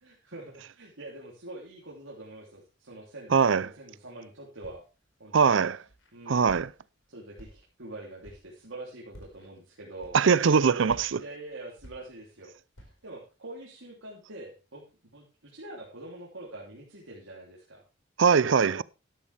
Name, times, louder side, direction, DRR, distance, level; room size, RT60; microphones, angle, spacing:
voice 1, 0.0-4.8 5.2-5.6 6.1-6.5 7.1-10.2 11.1-12.5 12.8-14.8 15.1-17.8, right 2 dB, 90° right, 3.1 m, -45 dB
voice 2, 3.3-3.7 5.3-5.8 6.3-6.7 10.1-11.2 18.2-18.8, right 6 dB, 75° right, 0.5 m, -21 dB
Walk footsteps, 4.6-5.1 5.6-6.1 6.5-6.9 7.3-7.9 8.2-8.6 9.1-9.5 10.0-10.5 10.9-12.4 12.7-13.1, equal, 90° left, 4.8 m, -51 dB
12.5 x 11.5 x 3.4 m
head